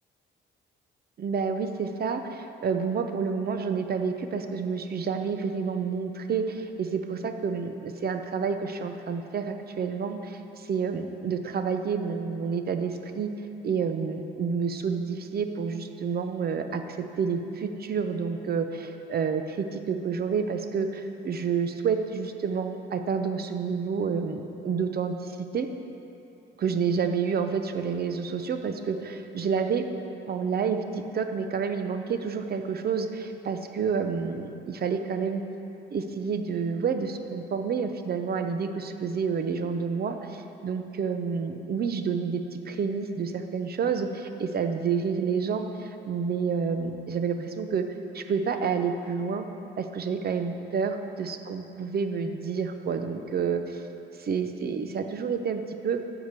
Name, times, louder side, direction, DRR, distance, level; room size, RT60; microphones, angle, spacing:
voice 1, 1.2-13.3 13.6-25.7 26.6-29.9 30.3-35.4 35.9-47.9 48.1-49.5 49.8-53.8 54.2-56.0, right 6 dB, 50° right, 7 dB, 0.8 m, -29 dB
14.0 x 5.0 x 6.8 m, 2.9 s
cardioid pair, 90°, 20 cm